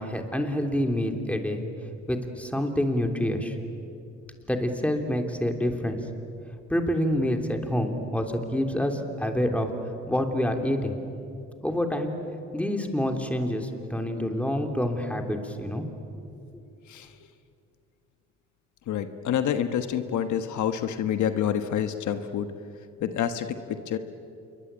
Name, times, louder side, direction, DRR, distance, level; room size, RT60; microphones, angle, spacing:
voice 1, 0.0-1.6 2.1-3.6 4.5-6.0 6.7-9.7 10.1-10.9 11.6-12.1 12.5-15.8, left 1 dB, 5° left, 4 dB, 3.2 m, -27 dB
voice 2, 16.9-17.2 18.9-22.5 23.0-24.0, left 9 dB, 75° left, 9 dB, 1.4 m, -28 dB
27.5 x 23.0 x 8.9 m, 2.6 s
cardioid pair, 90°, 30 cm